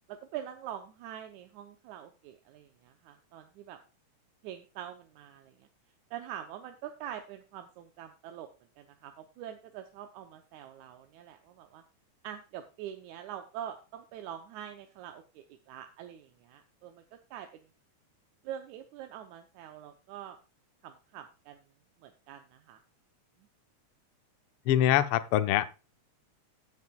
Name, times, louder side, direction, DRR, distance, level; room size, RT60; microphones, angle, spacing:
voice 1, 0.1-3.8 4.4-5.7 6.1-8.5 8.8-11.8 12.2-17.7 18.4-20.4 20.8-21.6 22.0-22.8, right 10 dB, 80° right, 6 dB, 2.2 m, -44 dB
voice 2, 24.7-25.7, left 12 dB, 80° left, 11 dB, 1.2 m, -24 dB
16.0 x 7.2 x 2.3 m, 0.31 s
omnidirectional pair, 3.4 m